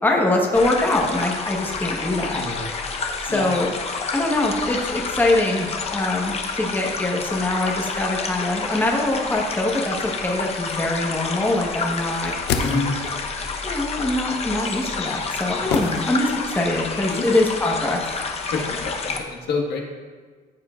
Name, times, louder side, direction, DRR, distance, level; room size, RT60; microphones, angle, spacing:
voice 1, 0.0-2.4 3.2-3.7 4.1-12.3 13.6-18.0, left 2 dB, 10° left, -1 dB, 1.3 m, -23 dB
sound 1, 0.5-19.2, left 4 dB, 40° left, 1.0 m, -29 dB
voice 2, 2.4-2.7 3.3-3.5 12.6-12.9 15.5-15.7 17.1-17.4 18.5-19.8, left 4 dB, 70° left, 0 dB, 1.7 m, -28 dB
sound 2, 12.1-13.3 15.7-16.6 16.9-17.0, left 6 dB, 90° left, 0.7 m, -28 dB
14.5 x 7.1 x 2.5 m, 1.5 s
cardioid pair, 110°, 17 cm